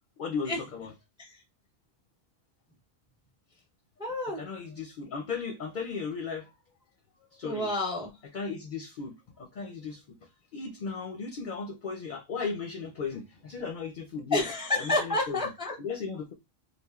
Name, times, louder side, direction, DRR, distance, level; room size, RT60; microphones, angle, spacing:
voice 1, 0.2-0.9 4.4-6.5 7.3-7.7 8.3-10.0 10.5-14.4 14.8-15.4 15.8-16.3, left 5 dB, 55° left, 0.6 m, -36 dB
voice 2, 4.0-4.4 7.4-8.1 14.3-15.8, left 2 dB, 5° right, 0.5 m, -29 dB
3.3 x 2.4 x 2.3 m
omnidirectional pair, 1.1 m